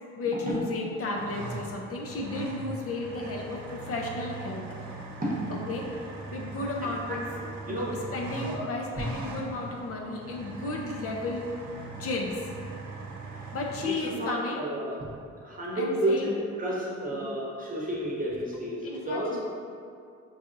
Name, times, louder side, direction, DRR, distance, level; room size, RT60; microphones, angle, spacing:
voice 1, 0.2-4.6 5.7-5.9 6.3-7.3 7.7-11.5 12.0-12.5 13.5-14.6 15.7-16.3 17.1-17.3 18.8-19.4, left 2 dB, 50° left, -1 dB, 0.5 m, -33 dB
sound 1, 1.0-13.9, right 3 dB, 70° right, 0.6 m, -41 dB
voice 2, 7.7-8.0 8.4-8.6 13.8-15.1 15.4-19.3, right 1 dB, 30° right, -5 dB, 0.9 m, -31 dB
4.7 x 2.7 x 2.5 m, 2.3 s
cardioid pair, 90°, 30 cm